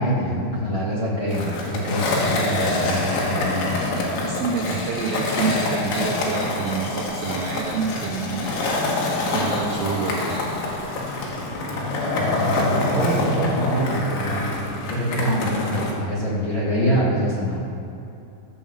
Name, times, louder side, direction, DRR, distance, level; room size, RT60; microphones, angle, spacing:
voice 1, 0.0-3.8 12.3-14.6 14.9-17.6, equal, 35° left, -8 dB, 2.2 m, -24 dB
Skateboard, 1.3-15.9, left 2 dB, 70° left, 3.6 m, -26 dB
voice 2, 4.2-9.1 9.3-10.5, right 5 dB, 90° right, -2 dB, 2.0 m, -28 dB
15.0 x 5.6 x 7.3 m, 2.7 s
omnidirectional pair, 5.4 m